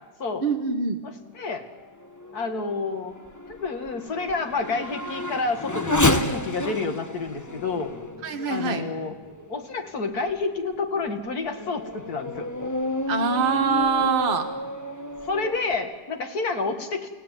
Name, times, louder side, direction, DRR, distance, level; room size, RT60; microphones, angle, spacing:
voice 1, 0.4-1.0 8.2-8.8 13.1-14.5, right 5 dB, 30° right, 5 dB, 1.7 m, -24 dB
voice 2, 1.0-1.6 2.3-3.1 3.5-6.0 6.3-7.9 8.5-9.2 9.5-12.5 15.2-17.1, left 3 dB, 55° left, 6 dB, 2.5 m, -29 dB
Race car auto racing / Accelerating revving vroom, 1.7-9.7 10.3-10.4 11.0-15.8, left 1 dB, 15° left, 0.9 m, -31 dB
29.5 x 16.5 x 9.3 m, 1.3 s
omnidirectional pair, 1.9 m